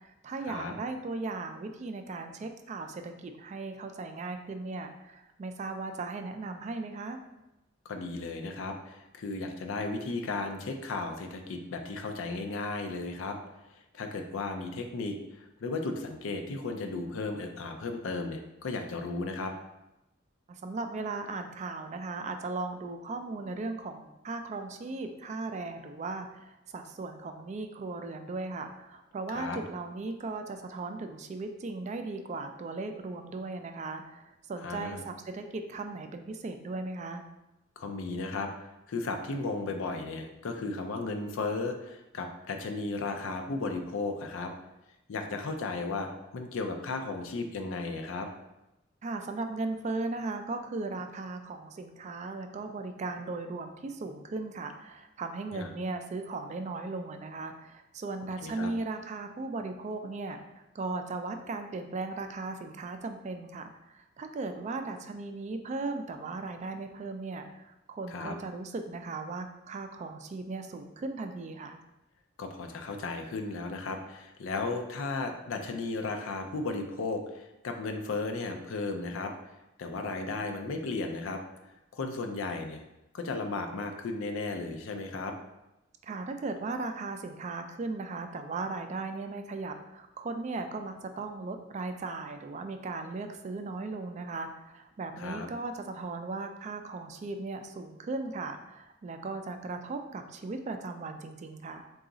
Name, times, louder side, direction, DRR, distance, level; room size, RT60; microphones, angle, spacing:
voice 1, 0.0-7.2 20.5-37.2 49.0-71.8 86.0-101.9, right 3 dB, 35° right, 7 dB, 0.3 m, -37 dB
voice 2, 7.9-13.4 13.9-19.5 29.3-29.6 34.6-35.0 37.8-38.5 38.9-44.5 45.1-48.3 55.5-55.7 58.4-58.7 68.1-68.3 72.4-79.3 79.8-81.4 81.9-82.8 83.1-85.3 95.2-95.5, left 3 dB, 90° left, 4 dB, 0.4 m, -35 dB
3.9 x 2.4 x 3.7 m, 0.94 s
head